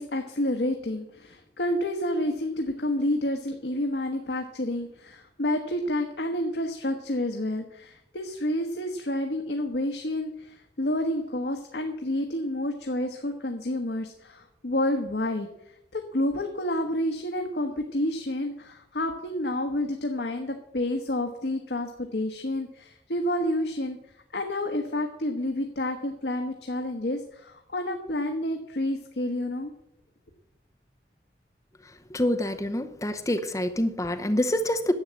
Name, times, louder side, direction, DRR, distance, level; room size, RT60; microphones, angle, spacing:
voice 1, 0.0-24.0 24.3-29.7, left 1 dB, 70° left, 4 dB, 1.1 m, -29 dB
voice 2, 32.1-34.9, left 1 dB, 20° left, 7 dB, 0.7 m, -26 dB
11.0 x 7.9 x 7.5 m, 0.79 s
head